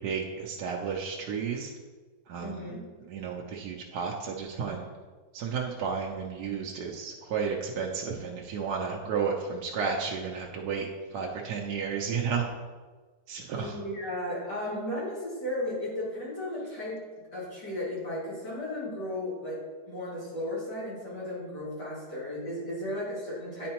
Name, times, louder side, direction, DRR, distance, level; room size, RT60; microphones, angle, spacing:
voice 1, 0.0-1.7 2.3-2.7 3.1-4.9 5.3-12.5 13.3-13.8, right 6 dB, 70° right, -1 dB, 1.2 m, -32 dB
voice 2, 2.4-2.8 13.6-17.0 17.3-19.6 19.9-23.7, left 1 dB, 80° left, -7 dB, 2.8 m, -35 dB
10.0 x 4.3 x 2.9 m, 1.4 s
omnidirectional pair, 1.8 m